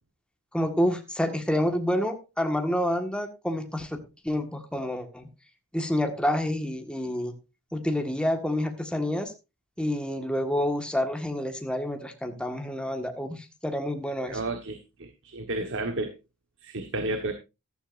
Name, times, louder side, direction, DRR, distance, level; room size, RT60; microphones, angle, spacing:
voice 1, 0.5-4.0 4.2-5.3 5.7-7.3 7.7-9.3 9.8-14.4, left 1 dB, 5° left, 5 dB, 1.7 m, -28 dB
voice 2, 14.3-16.1 16.6-17.3, right 2 dB, 60° right, 7 dB, 1.4 m, -32 dB
14.0 x 13.0 x 2.6 m, 0.27 s
head